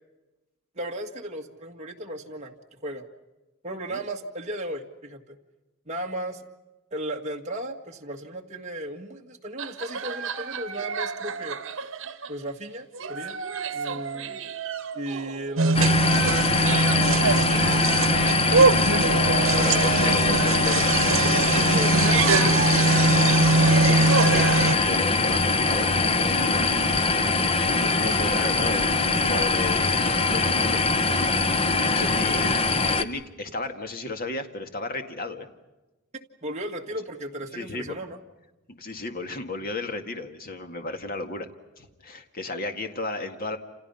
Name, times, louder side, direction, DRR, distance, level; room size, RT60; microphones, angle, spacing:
voice 1, 0.8-2.5 2.8-3.0 3.6-5.4 5.9-6.5 6.9-11.6 12.3-13.4 13.7-14.4 14.9-17.2 19.4-19.8 21.7-22.9 36.4-38.2, right 1 dB, 35° right, 1 dB, 2.0 m, -35 dB
sound 1, 9.6-12.5 12.9-17.1 17.5-24.6, right 6 dB, 65° right, 1.8 m, -33 dB
sound 2, 15.6-24.8, right 3 dB, 85° right, 1.1 m, -22 dB
sound 3, 15.7-33.0, left 3 dB, 30° left, 1.0 m, -23 dB
voice 2, 19.5-21.2 23.7-27.1 27.5-30.8 31.8-32.6 33.0-35.5 37.5-38.0 38.7-41.5 41.8-43.6, left 3 dB, 45° left, 6 dB, 2.1 m, -34 dB
29.0 x 28.5 x 5.7 m, 1.1 s
head